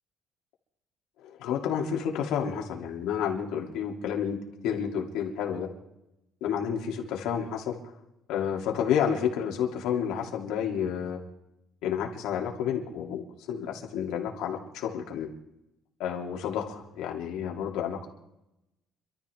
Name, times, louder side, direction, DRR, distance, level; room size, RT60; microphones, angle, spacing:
voice 1, 1.2-4.4 4.6-5.7 6.4-7.9 8.3-11.2 11.8-15.3 16.0-18.1, left 8 dB, 80° left, 0 dB, 2.9 m, -30 dB
27.0 x 13.0 x 3.6 m, 0.89 s
cardioid pair, 175°, 0 cm